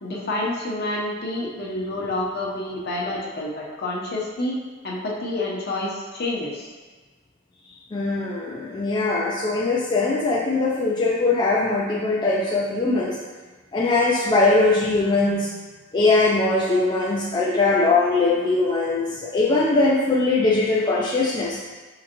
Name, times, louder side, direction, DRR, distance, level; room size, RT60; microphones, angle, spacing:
voice 1, 0.0-4.6 4.8-6.7, left 1 dB, 55° left, -3 dB, 0.8 m, -28 dB
voice 2, 7.9-13.2 13.7-15.5 15.9-21.6, left 3 dB, 25° left, -4 dB, 0.4 m, -21 dB
4.3 x 3.8 x 2.9 m, 1.3 s
head